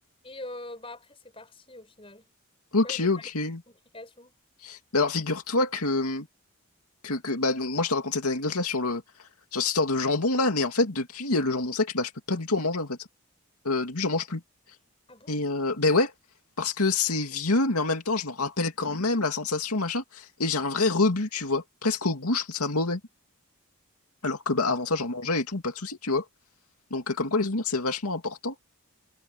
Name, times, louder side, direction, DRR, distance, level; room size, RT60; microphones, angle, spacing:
voice 1, 0.2-2.3 2.8-3.3 3.7-4.3 15.1-15.3, left 2 dB, 25° left, 5.8 m, -43 dB
voice 2, 2.7-3.6 4.6-6.3 7.0-9.0 9.5-13.0 13.6-14.4 15.3-16.1 16.6-23.0 24.2-26.2 26.9-28.5, left 3 dB, 90° left, 2.5 m, -26 dB
head